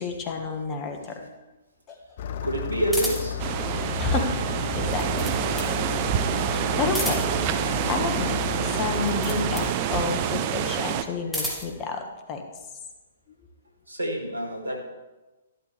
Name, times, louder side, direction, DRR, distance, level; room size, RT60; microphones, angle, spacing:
voice 1, 0.0-1.3 1.9-2.0 2.4-2.5 4.0-4.3 4.7-5.6 6.4-7.2 7.6-12.4, left 4 dB, 25° left, 4 dB, 1.6 m, -30 dB
Engine starting, 2.2-9.7, left 8 dB, 50° left, 0.6 m, -33 dB
voice 2, 2.4-3.5 13.9-14.8, right 1 dB, 85° right, 3 dB, 2.0 m, -28 dB
sound 1, 2.9-3.4 4.7-5.8 6.8-7.5 8.9-9.8 11.0-11.8, left 1 dB, 5° left, 2.2 m, -32 dB
sound 2, 3.4-11.0, right 10 dB, 35° right, 0.7 m, -27 dB
12.5 x 12.0 x 3.4 m, 1.1 s
figure-of-eight pair, 120°, 0 cm